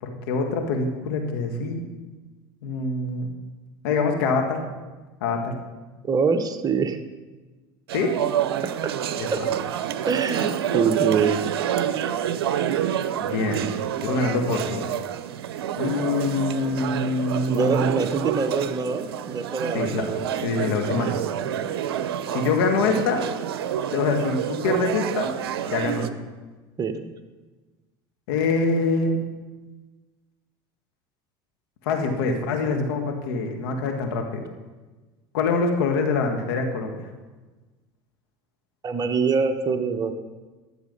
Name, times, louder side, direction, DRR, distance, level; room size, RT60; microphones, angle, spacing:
voice 1, 0.0-1.8 2.6-3.3 3.8-4.6 5.2-5.6 7.9-8.1 9.2-9.3 13.2-13.6 14.0-14.8 15.8-17.9 19.7-20.0 20.4-21.2 22.3-23.2 23.9-25.3 25.7-26.1 28.3-29.2 31.9-34.4 35.3-37.0, left 4 dB, 80° left, 3 dB, 1.8 m, -24 dB
voice 2, 6.0-7.0 8.6-8.9 9.3-9.4 10.1-11.4 17.5-20.2 26.8-27.1 38.8-40.1, right 5 dB, 30° right, 7 dB, 1.0 m, -24 dB
sound 1, 7.9-26.1, right 10 dB, 85° right, 0.6 m, -28 dB
12.5 x 7.4 x 5.4 m, 1.2 s
hypercardioid pair, 95°, 13 cm